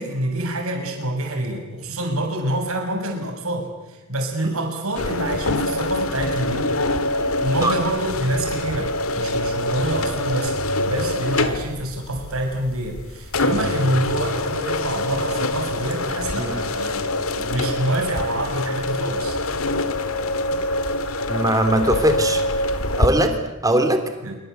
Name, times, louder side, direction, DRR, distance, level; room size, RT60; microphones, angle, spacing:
voice 1, 0.0-6.7 7.4-10.6 10.9-17.0 17.4-19.4 23.1-23.3 24.2-24.4, right 1 dB, 70° right, 3 dB, 7.1 m, -26 dB
sound 1, 5.0-23.1, left 2 dB, 70° left, 1.9 m, -25 dB
voice 2, 21.3-22.4 23.0-23.3 23.6-24.0, right 1 dB, 15° right, 8 dB, 3.3 m, -20 dB
26.5 x 25.0 x 8.2 m, 1.0 s
head